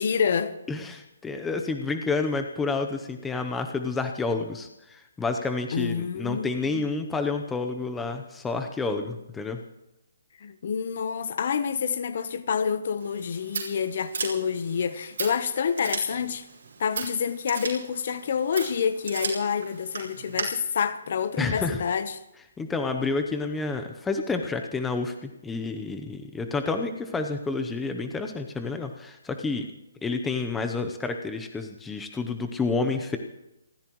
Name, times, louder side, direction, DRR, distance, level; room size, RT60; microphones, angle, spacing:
voice 1, 0.0-0.5 5.7-6.9 10.4-16.5 16.8-22.2, left 7 dB, 50° left, 0.9 m, -28 dB
voice 2, 0.7-9.6 21.4-21.8 22.6-29.7 30.0-33.2, left 3 dB, 5° left, 0.8 m, -29 dB
Scissors, 13.0-20.4, right 5 dB, 65° right, 5.6 m, -37 dB
28.5 x 14.5 x 3.1 m
hypercardioid pair, 170°, 0 cm